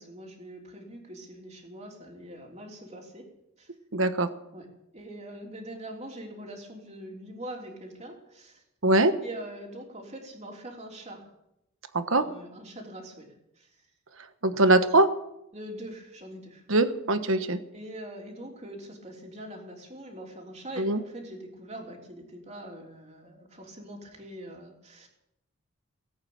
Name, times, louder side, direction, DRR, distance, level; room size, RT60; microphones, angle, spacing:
voice 1, 0.0-3.7 4.5-8.6 9.2-11.3 12.1-13.7 15.5-16.6 17.7-25.1, right 1 dB, 30° right, 1 dB, 3.4 m, -43 dB
voice 2, 3.9-4.3 8.8-9.1 11.9-12.2 14.4-15.1 16.7-17.6 20.8-21.0, right 2 dB, 70° right, 10 dB, 1.3 m, -22 dB
19.0 x 8.8 x 8.7 m, 0.82 s
head